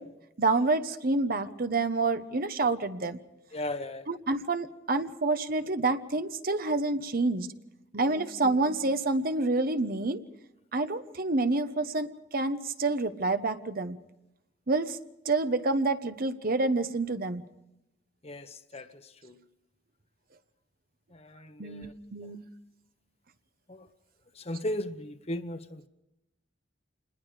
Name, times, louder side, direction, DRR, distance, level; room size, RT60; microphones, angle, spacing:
voice 1, 0.4-3.2 4.1-7.5 7.9-10.2 10.7-14.0 14.7-15.0 15.2-17.4 21.6-22.4, right 3 dB, 50° right, 10 dB, 1.1 m, -28 dB
voice 2, 3.5-4.0 18.2-18.5 18.7-18.8 19.2-19.3 21.6-21.9 24.5-25.9, left 1 dB, 35° left, 9 dB, 1.1 m, -35 dB
27.5 x 20.5 x 5.0 m, 0.89 s
head